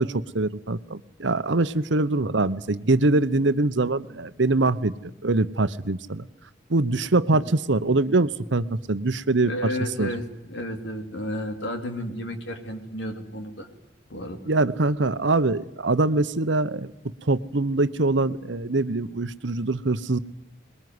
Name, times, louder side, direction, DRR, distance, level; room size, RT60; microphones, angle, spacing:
voice 1, 0.0-6.3 6.7-9.5 10.0-10.1 14.5-16.9 17.3-20.2, right 2 dB, 75° right, 14 dB, 1.0 m, -23 dB
voice 2, 9.5-13.7 14.1-14.4, equal, 75° left, 6 dB, 3.2 m, -32 dB
22.5 x 21.0 x 9.6 m, 0.90 s
head